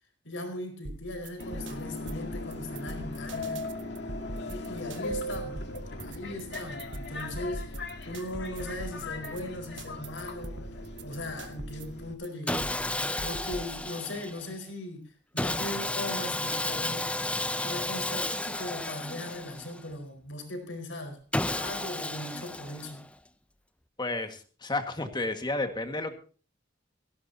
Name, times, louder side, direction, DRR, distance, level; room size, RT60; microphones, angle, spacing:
voice 1, 0.2-3.7 4.5-7.7 8.1-10.6 11.0-12.7 13.2-17.2 17.6-23.0, left 1 dB, 90° left, 4 dB, 4.6 m, -39 dB
sound 1, 0.8-13.8, right 2 dB, 70° right, 1.1 m, -42 dB
Subway metro underground, 1.4-12.1, left 2 dB, 65° left, 1.9 m, -39 dB
Sawing, 12.5-14.5 15.4-19.9 21.3-23.1, left 1 dB, 5° left, 0.6 m, -32 dB
voice 2, 24.0-26.1, left 2 dB, 25° left, 7 dB, 1.7 m, -31 dB
17.0 x 16.5 x 2.8 m, 0.39 s
head